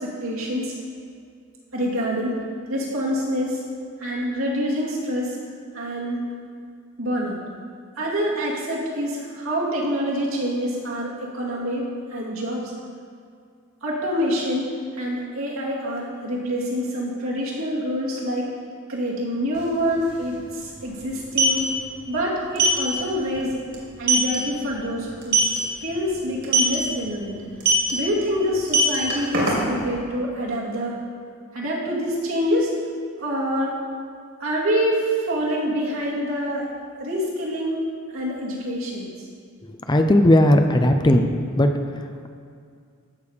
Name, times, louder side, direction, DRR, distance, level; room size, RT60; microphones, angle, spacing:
voice 1, 0.0-0.7 1.7-2.4 2.7-3.6 4.0-5.4 5.7-6.2 7.0-7.4 8.0-12.7 13.8-18.5 18.9-21.7 22.1-23.6 24.0-27.4 27.9-31.0 31.5-32.7 33.2-33.8 34.4-36.7 37.0-37.8 38.1-39.1, equal, 75° right, -5 dB, 2.5 m, -26 dB
sound 1, 19.5-19.6 19.9-20.1 21.1-21.6 22.6-22.8 23.2-23.4 23.7-23.8 24.1-24.4 25.2-25.6 26.4-26.8 27.6-27.9 28.6-29.9, right 3 dB, 55° right, 2.7 m, -19 dB
voice 2, 39.9-41.2 41.6-41.7, left 1 dB, 20° left, 6 dB, 0.6 m, -16 dB
14.0 x 6.9 x 5.1 m, 2.3 s
head